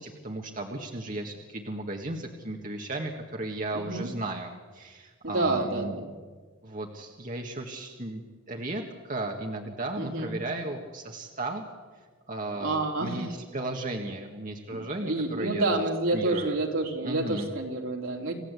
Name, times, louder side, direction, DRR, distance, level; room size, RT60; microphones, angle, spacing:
voice 1, 0.0-5.9 6.6-8.2 8.5-11.6 12.3-15.7 16.1-16.6 17.0-17.5, right 2 dB, 40° right, 1 dB, 1.8 m, -35 dB
voice 2, 3.7-4.1 5.2-6.1 10.0-10.3 12.6-13.3 15.0-18.3, right 2 dB, 75° right, 1 dB, 3.4 m, -28 dB
27.5 x 15.5 x 8.3 m, 1.5 s
head